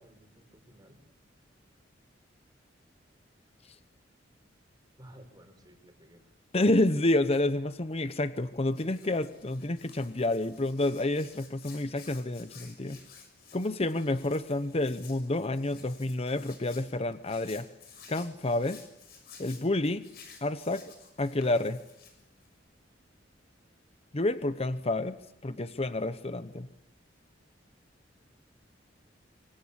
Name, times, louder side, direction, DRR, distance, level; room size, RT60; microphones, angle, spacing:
voice 1, 0.0-1.0 5.0-6.2, right 1 dB, 20° right, 4 dB, 5.8 m, -54 dB
voice 2, 6.5-13.0 13.5-17.7 18.1-18.8 19.4-20.0 20.4-20.8 21.2-21.8 24.1-25.2 25.4-26.7, left 2 dB, 35° left, 12 dB, 0.9 m, -29 dB
Hands, 8.0-22.6, left 6 dB, 60° left, 6.8 m, -54 dB
25.5 x 24.5 x 8.7 m, 0.92 s
head